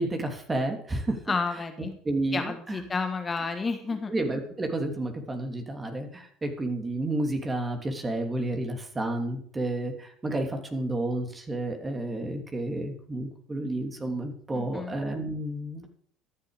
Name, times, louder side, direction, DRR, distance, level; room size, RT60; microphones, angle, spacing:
voice 1, 0.0-1.2 2.0-2.9 4.1-15.9, right 2 dB, 20° right, 4 dB, 3.0 m, -31 dB
voice 2, 1.3-2.0 2.3-4.1 14.5-15.0, left 4 dB, 25° left, 7 dB, 1.4 m, -31 dB
14.0 x 10.5 x 5.1 m, 0.62 s
hypercardioid pair, 75°, 0 cm